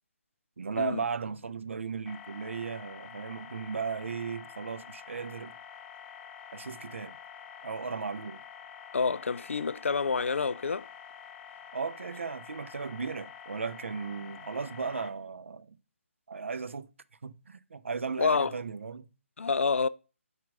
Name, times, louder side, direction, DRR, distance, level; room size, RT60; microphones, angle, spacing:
voice 1, 0.6-5.5 6.5-7.2 7.6-8.4 11.7-15.8 16.3-16.9 17.2-19.1, right 5 dB, 65° right, 0.5 m, -36 dB
sound 1, 2.1-15.1, left 8 dB, 10° left, 0.5 m, -48 dB
voice 2, 8.9-10.9 18.2-18.5 19.4-19.9, left 5 dB, 65° left, 0.3 m, -28 dB
4.8 x 4.5 x 4.9 m
figure-of-eight pair, 145°, 7 cm